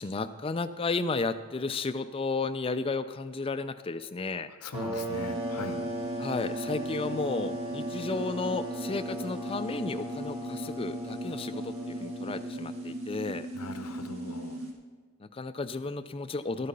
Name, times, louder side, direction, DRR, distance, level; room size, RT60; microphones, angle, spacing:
voice 1, 0.0-4.5 6.2-13.5 15.2-16.7, left 3 dB, 25° left, 12 dB, 0.4 m, -33 dB
voice 2, 4.6-5.8 13.5-14.6, left 2 dB, 90° left, 9 dB, 0.9 m, -40 dB
sound 1, 4.7-13.1, right 1 dB, 25° right, 1.6 m, -38 dB
sound 2, 5.1-14.7, right 1 dB, 70° right, 1.9 m, -38 dB
12.5 x 8.4 x 5.3 m, 1.5 s
head